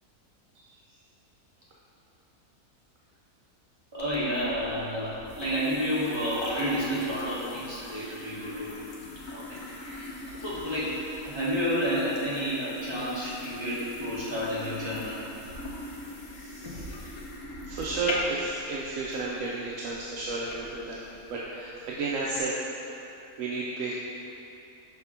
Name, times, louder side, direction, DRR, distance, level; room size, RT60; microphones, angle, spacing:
voice 1, 3.9-8.8 9.3-10.1 10.3-11.0 11.2-15.2, equal, 20° right, -10 dB, 1.5 m, -30 dB
sound 1, 4.0-22.4, left 1 dB, 90° left, 1.4 m, -41 dB
voice 2, 16.3-16.9 17.7-21.0 21.3-22.5 23.4-23.9, right 3 dB, 65° right, -5 dB, 1.0 m, -32 dB
5.9 x 3.6 x 5.6 m, 3.0 s
omnidirectional pair, 1.6 m